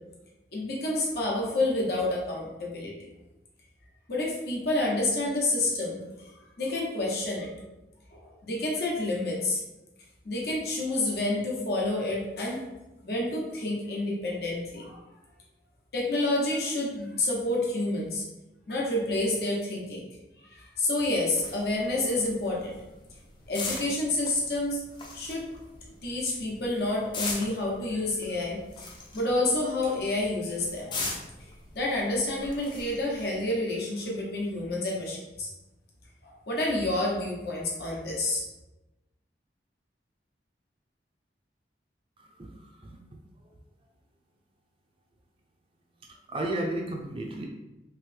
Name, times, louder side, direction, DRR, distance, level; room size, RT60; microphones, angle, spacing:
voice 1, 0.5-3.1 4.1-6.3 6.6-7.5 8.2-9.6 10.2-12.6 13.0-15.0 15.9-18.2 18.7-20.0 20.4-22.8 23.5-24.8 25.1-25.5 26.0-28.9 29.1-30.9 31.7-35.5 36.2-38.4, left 2 dB, 60° left, -3 dB, 0.9 m, -29 dB
sound 1, 21.3-33.5, left 3 dB, 25° left, 0.5 m, -41 dB
voice 2, 46.3-47.4, right 1 dB, 30° right, 0 dB, 0.4 m, -32 dB
3.2 x 3.0 x 3.3 m, 0.99 s
head